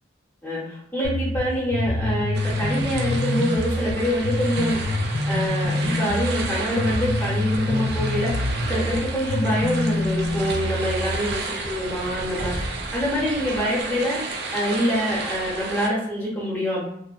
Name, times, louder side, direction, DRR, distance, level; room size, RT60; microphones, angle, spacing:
voice 1, 0.4-4.8 5.3-16.8, equal, 10° left, -6 dB, 0.6 m, -25 dB
sound 1, 1.0-11.2, left 1 dB, 80° left, 0.3 m, -26 dB
sound 2, 2.3-15.9, right 3 dB, 55° right, 0.4 m, -32 dB
2.5 x 2.1 x 2.4 m, 0.77 s
head